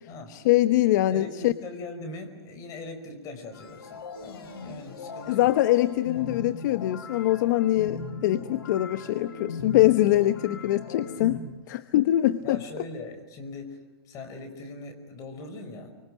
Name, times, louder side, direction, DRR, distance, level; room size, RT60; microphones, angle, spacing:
voice 1, 0.3-1.5 5.3-12.6, left 15 dB, 45° left, 13 dB, 0.9 m, -23 dB
voice 2, 1.1-5.5 12.4-13.8 14.0-15.9, left 3 dB, 25° left, 7 dB, 4.8 m, -40 dB
sound 1, 3.5-11.4, left 4 dB, 65° left, 5.1 m, -39 dB
29.0 x 25.0 x 7.5 m, 1.1 s
hypercardioid pair, 145°, 13 cm